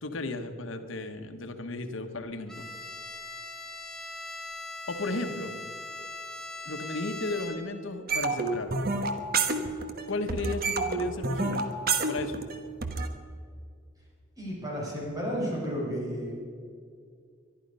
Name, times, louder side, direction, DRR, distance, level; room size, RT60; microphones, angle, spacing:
voice 1, 0.0-2.6 4.9-5.5 6.6-8.7 10.1-11.7 12.1-12.4, left 2 dB, 85° left, 7 dB, 1.2 m, -34 dB
Bowed string instrument, 2.5-7.9, left 2 dB, 5° left, 1.5 m, -41 dB
sound 1, 8.1-10.0 10.3-13.1, right 3 dB, 50° right, 1.3 m, -28 dB
voice 2, 14.4-16.4, equal, 20° right, -4 dB, 5.8 m, -32 dB
23.0 x 11.5 x 5.5 m, 2.2 s
head